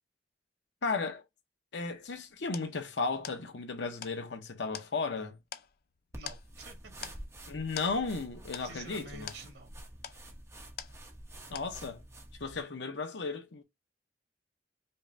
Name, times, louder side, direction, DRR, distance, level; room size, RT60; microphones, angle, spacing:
voice 1, 0.8-1.2 1.7-5.4 7.5-9.3 11.5-12.0 12.4-13.6, left 4 dB, 80° left, 0.8 m, -35 dB
sound 1, 2.0-11.3 11.5-12.1, left 9 dB, 60° left, 0.4 m, -47 dB
sound 2, 6.1-12.6, right 1 dB, 15° right, 0.9 m, -49 dB
voice 2, 6.1-7.1 8.6-9.7, right 3 dB, 85° right, 1.7 m, -49 dB
5.4 x 2.2 x 2.6 m
head